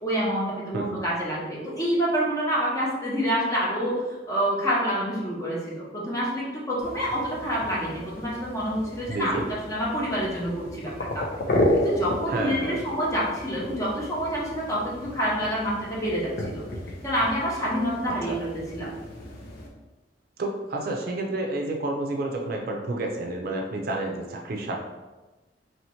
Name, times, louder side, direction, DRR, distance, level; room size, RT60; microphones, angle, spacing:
voice 1, 0.0-4.0 4.3-9.3 9.7-11.2 11.8-16.6 17.0-18.9, equal, 20° left, -6 dB, 1.1 m, -27 dB
sound 1, 6.8-19.7, left 1 dB, 55° left, 0.7 m, -33 dB
voice 2, 9.1-9.5 12.3-12.8 18.1-18.4 20.4-24.9, right 2 dB, 55° right, 1 dB, 0.5 m, -30 dB
3.0 x 2.9 x 4.3 m, 1.2 s
head